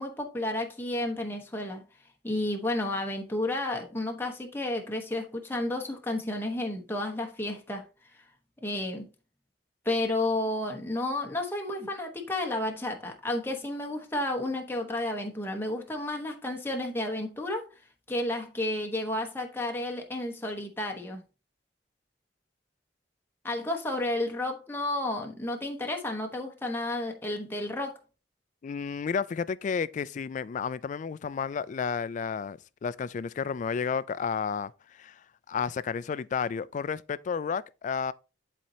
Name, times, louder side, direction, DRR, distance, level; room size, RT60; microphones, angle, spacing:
voice 1, 0.0-1.8 2.2-7.9 8.2-8.3 8.6-9.1 9.8-17.7 18.1-21.2 23.4-28.0, left 1 dB, 15° left, 1.0 m, -31 dB
voice 2, 28.6-35.2 35.5-38.1, left 6 dB, 45° left, 0.3 m, -32 dB
10.5 x 4.2 x 2.7 m
head